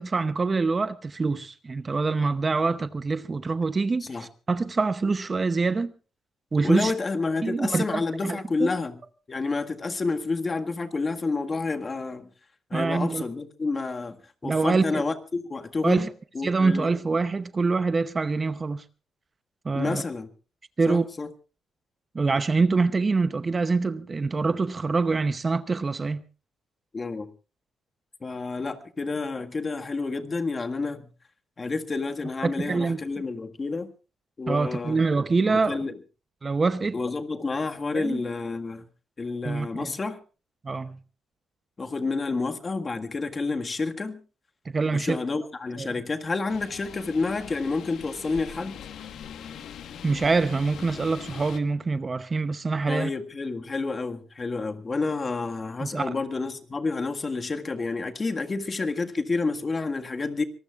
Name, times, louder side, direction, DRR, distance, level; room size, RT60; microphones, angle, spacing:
voice 1, 0.0-5.9 6.5-6.9 7.4-8.7 12.7-13.2 14.4-15.0 15.8-16.1 16.4-18.8 19.6-20.0 20.8-21.1 22.1-26.2 32.4-33.0 34.5-35.8 36.4-37.0 37.9-38.2 39.4-39.9 40.6-41.0 44.6-45.2 45.8-45.9 50.0-53.1 55.8-56.1, right 4 dB, 30° right, 0.8 m, -25 dB
voice 2, 6.6-9.0 9.3-12.3 12.7-14.1 14.4-16.1 16.3-16.9 19.7-20.3 20.9-21.3 26.9-27.3 28.2-31.0 31.6-33.9 34.4-35.0 35.5-35.9 36.9-38.8 39.2-40.2 41.8-44.2 44.9-48.8 52.9-60.4, left 3 dB, 30° left, 1.8 m, -29 dB
sound 1, 46.5-51.6, left 8 dB, 75° left, 1.4 m, -42 dB
25.5 x 19.0 x 2.4 m
cardioid pair, 90°, 0 cm